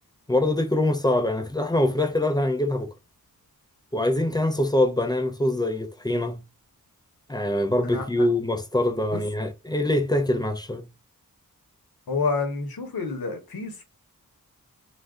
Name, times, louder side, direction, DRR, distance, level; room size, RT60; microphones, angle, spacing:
voice 1, 0.3-2.9 3.9-6.4 7.3-10.9, left 1 dB, 10° left, 0.4 m, -24 dB
voice 2, 7.8-8.3 9.1-9.2 12.1-13.8, left 4 dB, 80° left, 0.9 m, -29 dB
2.4 x 2.2 x 3.5 m
wide cardioid pair, 50°, 36 cm